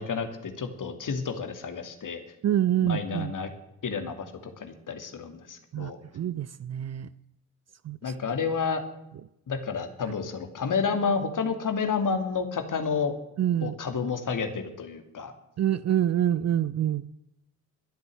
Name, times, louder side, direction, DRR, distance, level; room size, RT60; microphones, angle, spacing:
voice 1, 0.0-2.2 2.8-3.5 3.8-6.0 8.0-8.8 9.5-13.1 13.6-15.3, left 5 dB, 45° left, 7 dB, 2.6 m, -30 dB
voice 2, 2.4-3.3 5.7-7.1 7.8-8.1 13.4-13.7 15.6-17.1, right 11 dB, 35° right, 17 dB, 0.6 m, -26 dB
22.5 x 8.1 x 7.8 m, 0.85 s
figure-of-eight pair, 45°, 45 cm